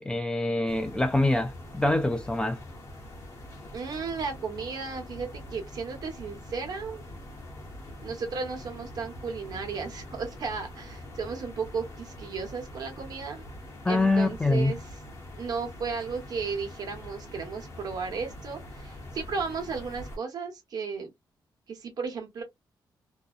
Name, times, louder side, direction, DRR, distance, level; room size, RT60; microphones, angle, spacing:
voice 1, 0.0-2.6 13.8-14.7, left 2 dB, 10° left, 0.3 m, -25 dB
sound 1, 0.7-20.2, left 1 dB, 40° left, 0.8 m, -44 dB
voice 2, 3.7-7.0 8.0-13.4 13.9-14.8 15.4-21.1 21.7-22.4, right 5 dB, 55° right, 1.0 m, -34 dB
2.6 x 2.0 x 2.3 m
wide cardioid pair, 170°, 8 cm